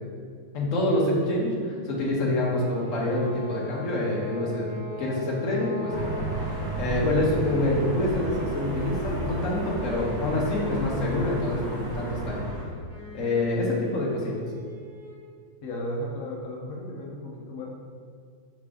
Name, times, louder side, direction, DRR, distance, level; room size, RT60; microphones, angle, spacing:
voice 1, 0.5-4.7 5.0-12.4 13.1-14.5, left 1 dB, 50° left, -3 dB, 1.1 m, -26 dB
sound 1, 2.5-15.3, equal, 75° right, 2.0 m, -44 dB
sound 2, 5.9-12.6, right 1 dB, 45° right, 1.8 m, -32 dB
voice 2, 15.6-17.7, equal, 75° left, -2 dB, 0.7 m, -34 dB
5.3 x 5.0 x 3.5 m, 2.1 s
omnidirectional pair, 2.4 m